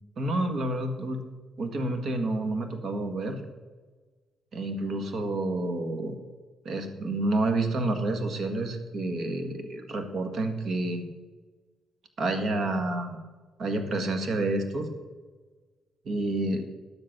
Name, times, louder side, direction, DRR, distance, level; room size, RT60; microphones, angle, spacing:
voice 1, 0.2-1.2 1.6-3.4 4.5-6.2 6.6-11.1 12.2-13.2 13.6-14.9 16.0-16.6, right 2 dB, 55° right, 6 dB, 1.7 m, -29 dB
11.5 x 7.8 x 6.0 m, 1.3 s
cardioid pair, 90°, 0 cm